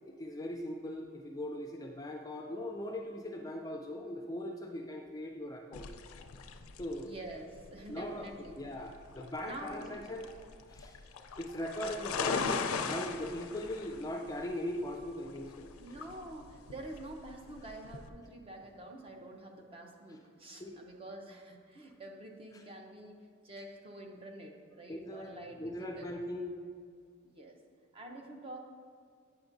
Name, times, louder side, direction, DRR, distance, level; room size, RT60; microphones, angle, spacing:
voice 1, 0.0-5.9 6.8-7.2 7.9-8.3 8.5-10.3 10.7-11.0 11.4-15.7 20.6-20.8 22.5-22.6 24.9-25.3 25.6-26.6, left 1 dB, 15° left, 2 dB, 0.4 m, -40 dB
sound 1, 5.7-18.1, left 5 dB, 90° left, 0.4 m, -40 dB
voice 2, 7.0-8.6 9.4-9.9 15.8-23.2 23.4-26.1 27.2-27.6 27.9-28.6, right 1 dB, 25° right, 2 dB, 0.6 m, -47 dB
8.8 x 5.9 x 2.6 m, 2.2 s
head